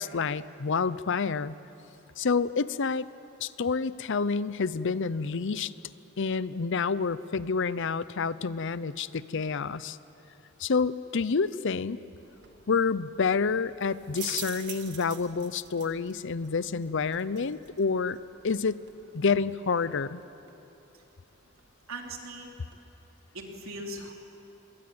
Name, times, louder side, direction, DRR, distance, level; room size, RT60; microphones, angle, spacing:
voice 1, 0.0-1.5 2.2-3.1 3.4-5.7 6.2-10.0 10.6-12.0 12.7-18.2 18.4-18.8 19.1-20.2, left 5 dB, 60° left, 17 dB, 0.6 m, -28 dB
sound 1, 12.2-22.8, right 10 dB, 55° right, 1.9 m, -48 dB
voice 2, 21.9-22.5 23.3-24.1, right 1 dB, 85° right, 1 dB, 3.6 m, -39 dB
26.0 x 22.0 x 8.7 m, 3.0 s
head